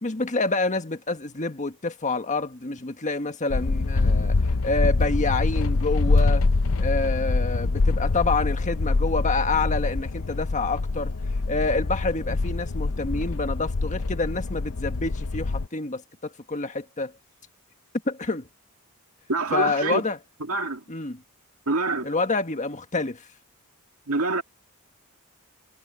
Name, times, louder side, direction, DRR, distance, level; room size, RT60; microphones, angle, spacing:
voice 1, 0.0-6.4 6.8-11.1 11.5-17.1 18.0-18.5 19.5-20.2 20.9-21.2 22.0-23.3, left 3 dB, 35° left, 1.5 m, -27 dB
sound 1, 3.5-15.7, left 3 dB, 65° left, 0.7 m, -24 dB
voice 2, 19.3-20.1 20.5-20.8 21.7-22.1 24.1-24.4, right 3 dB, 75° right, 2.2 m, -25 dB
head